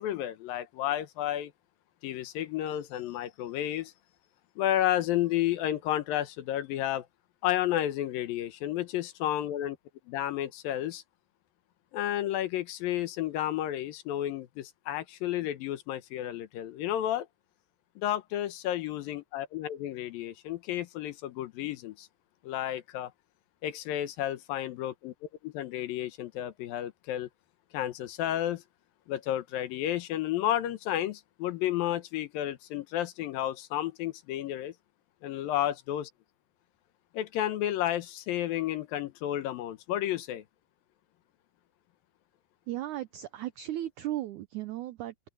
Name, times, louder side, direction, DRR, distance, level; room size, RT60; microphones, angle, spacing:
voice 1, 0.0-1.5 2.0-3.9 4.6-7.1 7.4-9.8 10.1-11.0 11.9-17.3 18.0-22.1 22.4-23.1 23.6-25.1 25.4-27.3 27.7-28.6 29.1-34.7 35.2-36.1 37.1-40.4, left 12 dB, 75° left, 2.6 m, -31 dB
voice 2, 42.7-45.3, right 13 dB, 85° right, 1.7 m, -36 dB
omnidirectional pair, 4.4 m